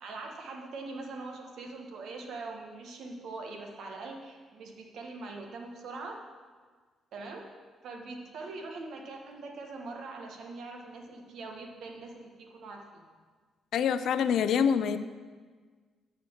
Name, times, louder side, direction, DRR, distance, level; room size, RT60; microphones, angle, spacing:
voice 1, 0.0-6.2 7.1-7.5 7.8-13.1, right 3 dB, 70° right, 2 dB, 1.4 m, -42 dB
voice 2, 13.7-15.0, left 7 dB, 70° left, 12 dB, 0.4 m, -25 dB
9.6 x 4.3 x 7.1 m, 1.5 s
cardioid pair, 90°, 0 cm